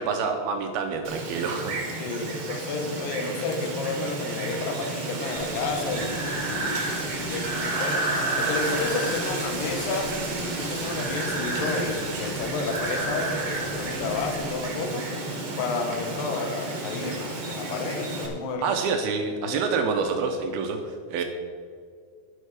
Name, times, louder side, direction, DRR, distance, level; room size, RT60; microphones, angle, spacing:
voice 1, 0.0-1.8 18.6-21.2, right 5 dB, 85° right, 4 dB, 2.2 m, -27 dB
Wind, 1.0-18.3, right 2 dB, 45° right, 2.4 m, -32 dB
voice 2, 2.0-10.1 10.4-15.1 15.6-18.7 19.5-19.6 21.2-21.3, left 4 dB, 75° left, 5 dB, 2.0 m, -31 dB
Breathing, 5.4-14.4, right 2 dB, 20° right, 3.1 m, -32 dB
11.0 x 11.0 x 4.8 m, 2.1 s
omnidirectional pair, 5.4 m